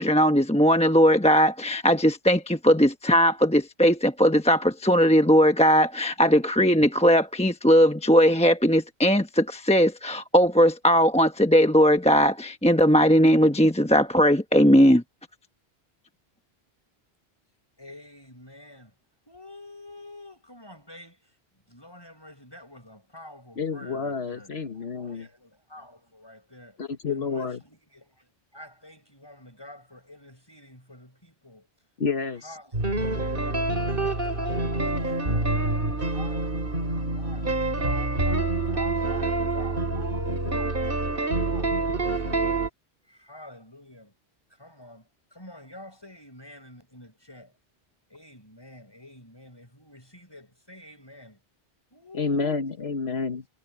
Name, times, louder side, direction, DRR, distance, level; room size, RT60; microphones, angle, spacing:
voice 1, 0.0-15.0, equal, 5° left, 0.9 m, -19 dB
voice 2, 17.8-18.9 19.3-21.3 21.7-24.5 25.0-26.8 27.1-28.3 28.5-31.7 32.4-35.4 36.1-40.8 41.4-42.4 43.1-44.1 44.6-47.5 48.1-51.4 51.9-52.5, left 1 dB, 25° left, 7.7 m, -47 dB
voice 3, 23.6-25.3 26.8-27.6 32.0-32.6 52.2-53.5, left 4 dB, 80° left, 1.6 m, -29 dB
sound 1, 32.7-42.7, right 2 dB, 60° right, 3.4 m, -26 dB
omnidirectional pair, 1.1 m